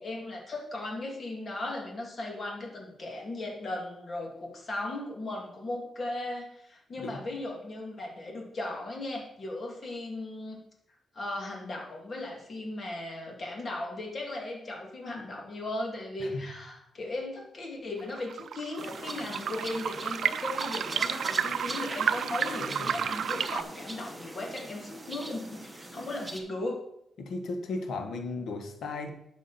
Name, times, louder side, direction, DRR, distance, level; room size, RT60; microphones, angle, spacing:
voice 1, 0.0-10.6 11.1-26.8, left 2 dB, 40° left, 0 dB, 2.4 m, -37 dB
sound 1, 18.0-23.6, right 8 dB, 70° right, 0.5 m, -31 dB
sound 2, 18.8-26.4, right 1 dB, 10° right, 1.3 m, -42 dB
voice 2, 22.6-23.0 27.2-29.1, left 3 dB, 80° left, 5 dB, 1.4 m, -36 dB
11.5 x 6.2 x 4.2 m, 0.75 s
cardioid pair, 115°, 0 cm